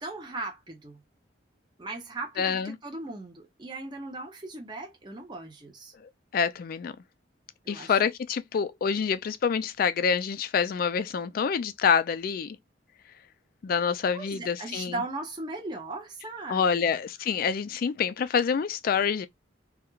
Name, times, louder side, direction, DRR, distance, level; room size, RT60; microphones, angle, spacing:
voice 1, 0.0-1.0 1.8-5.9 7.6-8.0 14.1-16.9, right 2 dB, 25° right, 0.6 m, -38 dB
voice 2, 2.4-2.8 6.3-6.9 7.7-12.6 13.6-14.9 16.5-19.3, left 6 dB, 50° left, 0.3 m, -26 dB
2.3 x 2.1 x 2.9 m
head